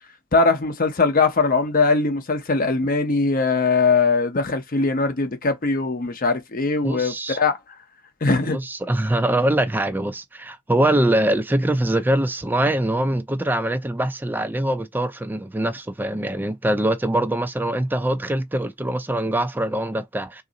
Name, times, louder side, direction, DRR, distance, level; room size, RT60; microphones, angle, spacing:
voice 1, 0.3-7.6 8.2-8.6, left 4 dB, 45° left, 0.7 m, -21 dB
voice 2, 6.8-7.4 8.4-20.4, right 1 dB, 10° right, 0.4 m, -23 dB
3.6 x 2.6 x 3.9 m
head